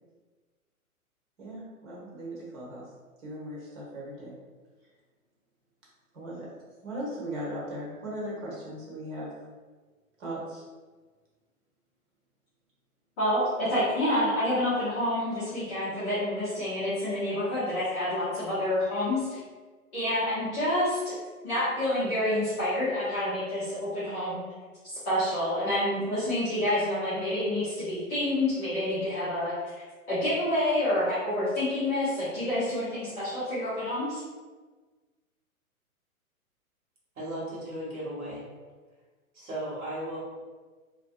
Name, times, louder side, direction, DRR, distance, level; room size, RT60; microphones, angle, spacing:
voice 1, 1.4-2.9 3.2-4.3 6.1-6.5 6.8-9.3 10.2-10.6, right 1 dB, 55° right, -4 dB, 1.2 m, -38 dB
voice 2, 13.2-19.4 19.9-21.1 21.4-24.4 24.8-34.2, left 1 dB, 10° left, -15 dB, 0.4 m, -28 dB
voice 3, 37.1-38.5 39.3-40.2, right 1 dB, 75° right, -6 dB, 1.4 m, -36 dB
2.6 x 2.2 x 2.3 m, 1.4 s
hypercardioid pair, 125°, 44 cm